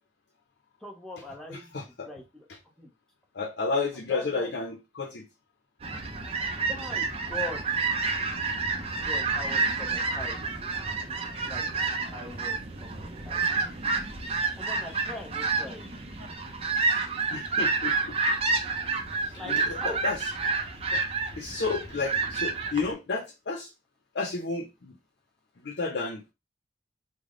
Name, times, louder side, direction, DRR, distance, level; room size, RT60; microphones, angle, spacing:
voice 1, 0.8-1.7 2.1-2.4 2.8-2.9 4.1-4.5 6.7-7.6 8.8-10.5 11.5-11.6 12.1-12.5 12.8-13.5 14.6-15.9 19.3-20.0, left 2 dB, 5° left, 0.8 m, -41 dB
voice 2, 1.7-2.1 3.3-5.2 17.3-18.2 19.2-20.2 20.9-21.0 21.3-23.7 24.1-25.0 25.6-26.2, left 4 dB, 75° left, 0.6 m, -31 dB
sound 1, 5.8-22.9, right 4 dB, 35° right, 0.5 m, -29 dB
3.4 x 2.1 x 3.7 m
head